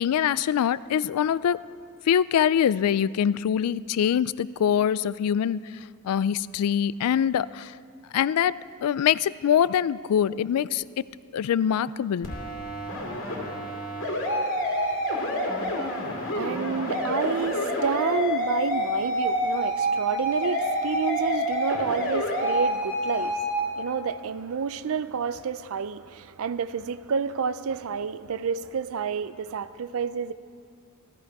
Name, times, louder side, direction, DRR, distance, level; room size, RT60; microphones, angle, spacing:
voice 1, 0.0-1.6 2.1-5.7 6.0-7.7 8.1-8.5 8.8-11.0 11.3-12.3, left 9 dB, 80° left, 19 dB, 0.3 m, -24 dB
sound 1, 12.2-23.6, equal, 60° left, 2.4 m, -28 dB
voice 2, 14.8-30.3, right 6 dB, 65° right, 15 dB, 0.4 m, -30 dB
15.0 x 13.5 x 4.7 m, 2.2 s
head